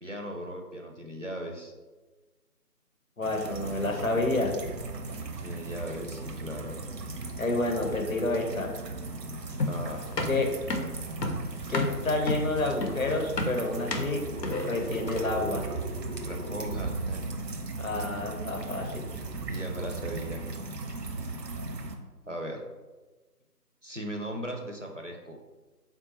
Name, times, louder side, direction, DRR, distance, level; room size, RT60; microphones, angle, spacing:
voice 1, 0.0-1.7 5.4-6.8 9.7-10.1 16.2-17.2 19.3-20.4 22.3-22.6 23.8-25.4, equal, 55° right, 1 dB, 0.5 m, -38 dB
voice 2, 3.2-4.5 7.4-8.7 10.3-10.5 11.7-14.2 14.6-15.6 17.8-19.1, left 2 dB, 60° left, 2 dB, 0.7 m, -29 dB
sound 1, 3.2-21.9, right 3 dB, 90° right, 0.7 m, -37 dB
sound 2, 9.6-15.4, left 2 dB, 90° left, 0.7 m, -32 dB
sound 3, 14.3-16.7, equal, ahead, 0.6 m, -42 dB
3.6 x 2.3 x 4.0 m, 1.2 s
figure-of-eight pair, 165°, 48 cm